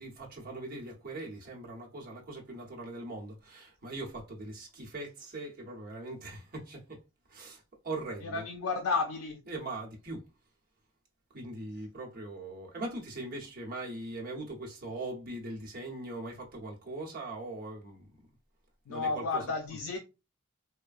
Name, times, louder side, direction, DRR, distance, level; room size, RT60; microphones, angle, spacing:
voice 1, 0.0-7.0 7.3-8.8 9.4-10.2 11.3-18.1 18.9-19.8, right 2 dB, 40° right, 0.9 m, -41 dB
voice 2, 8.2-9.4 18.9-20.0, left 4 dB, 80° left, 0.4 m, -32 dB
3.2 x 2.1 x 2.3 m
head